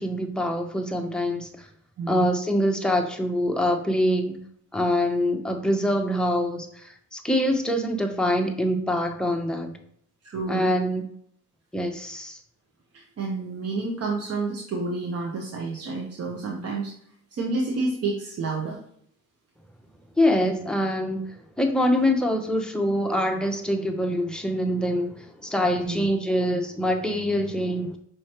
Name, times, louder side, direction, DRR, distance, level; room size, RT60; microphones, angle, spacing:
voice 1, 0.0-1.7 2.1-4.4 4.7-9.7 10.5-11.0 11.7-12.4 20.2-21.2 21.6-28.0, equal, 5° left, 3 dB, 0.7 m, -24 dB
voice 2, 2.0-2.3 10.2-10.7 13.2-16.9 17.3-18.8 25.8-26.1, right 3 dB, 55° right, -1 dB, 0.8 m, -29 dB
5.7 x 3.1 x 2.9 m, 0.66 s
cardioid pair, 90°, 30 cm